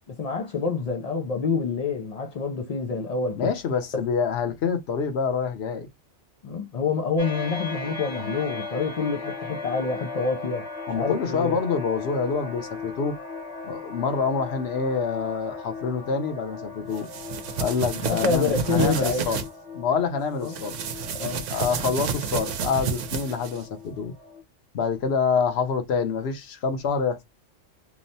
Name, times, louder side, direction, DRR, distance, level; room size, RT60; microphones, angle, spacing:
voice 1, 0.1-3.5 6.4-10.7 10.9-11.6 17.9-19.3 20.4-20.6 21.1-21.5, left 4 dB, 90° left, 0.3 m, -27 dB
voice 2, 3.4-5.9 10.9-13.2 13.6-17.1 17.6-19.4 19.7-20.8 21.5-24.1 24.7-27.2, left 5 dB, 65° left, 0.9 m, -26 dB
sound 1, 7.2-24.4, left 4 dB, 35° left, 0.8 m, -38 dB
sound 2, 17.0-19.5 20.5-23.6, right 7 dB, 90° right, 0.9 m, -30 dB
3.0 x 2.1 x 2.6 m
omnidirectional pair, 1.2 m